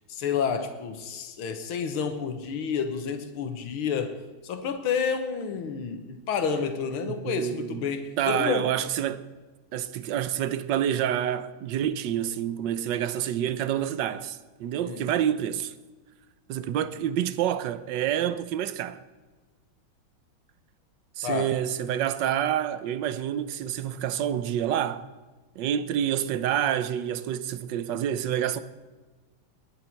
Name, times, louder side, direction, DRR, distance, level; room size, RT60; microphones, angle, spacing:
voice 1, 0.1-8.7 14.9-15.1 21.2-21.5, left 6 dB, 90° left, 1.9 m, -30 dB
voice 2, 7.0-7.9 8.2-9.3 9.7-15.7 16.5-19.0 21.2-25.1 25.6-28.6, right 10 dB, 70° right, 1.3 m, -28 dB
22.0 x 10.0 x 4.5 m
omnidirectional pair, 2.2 m